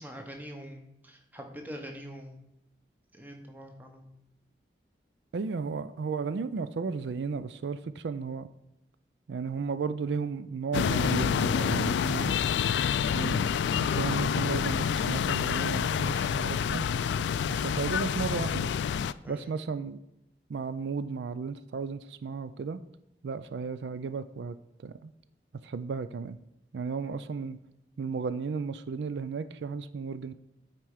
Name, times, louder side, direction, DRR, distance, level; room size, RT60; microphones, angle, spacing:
voice 1, 0.0-2.4 3.1-4.1 19.2-19.5, equal, 10° right, 3 dB, 1.0 m, -44 dB
voice 2, 5.3-8.5 9.3-12.4 13.1-13.5 13.8-16.9 17.5-18.7 19.3-20.0 20.5-22.8 23.2-25.1 25.6-26.4 26.7-27.6 28.0-30.3, right 5 dB, 85° right, 13 dB, 0.4 m, -34 dB
sound 1, 10.7-19.1, left 7 dB, 90° left, 0.3 m, -28 dB
8.9 x 4.5 x 4.8 m, 0.84 s
head